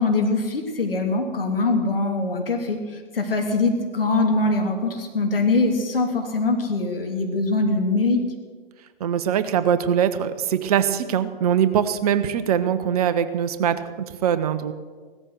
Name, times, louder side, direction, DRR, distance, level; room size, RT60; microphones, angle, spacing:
voice 1, 0.0-2.8 3.1-8.2, left 3 dB, 75° left, 3 dB, 3.0 m, -22 dB
voice 2, 9.0-14.7, right 9 dB, 40° right, 12 dB, 0.9 m, -22 dB
16.5 x 13.5 x 6.5 m, 1.5 s
figure-of-eight pair, 125°, 29 cm